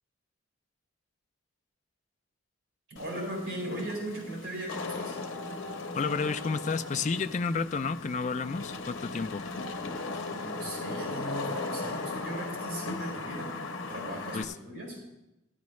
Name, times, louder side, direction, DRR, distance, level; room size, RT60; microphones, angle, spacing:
voice 1, 2.9-5.2 10.3-13.5 13.9-15.0, right 1 dB, 65° right, -2 dB, 4.6 m, -38 dB
Wind / Rain, 3.0-14.4, left 3 dB, 75° left, 0.8 m, -37 dB
voice 2, 5.9-9.5 14.3-14.5, left 4 dB, 35° left, 10 dB, 0.3 m, -31 dB
15.5 x 9.4 x 3.1 m, 0.91 s
head